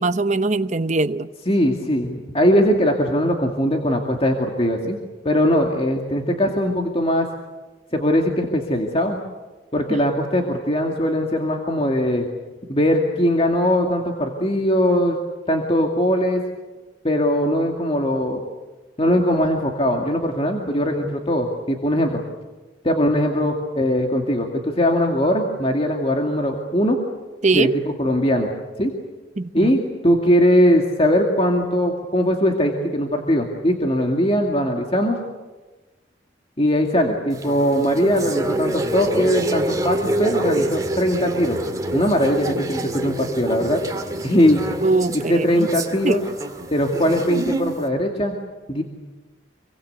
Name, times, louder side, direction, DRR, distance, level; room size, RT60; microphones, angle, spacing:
voice 1, 0.0-1.3 27.4-27.7 29.4-29.7 44.8-45.7 46.0-46.2, right 3 dB, 40° right, 0.8 m, -21 dB
voice 2, 1.5-5.0 5.2-7.3 7.9-9.2 9.7-12.3 12.7-15.2 15.5-16.4 17.0-18.4 19.0-22.2 22.8-27.0 27.5-28.5 28.8-28.9 29.5-35.2 36.6-41.6 41.9-43.8 44.2-44.6 45.1-46.2 46.7-48.3 48.7-48.8, equal, 30° left, 2.3 m, -20 dB
sound 1, 37.3-47.8, right 1 dB, 20° right, 2.1 m, -27 dB
26.5 x 23.5 x 8.2 m
head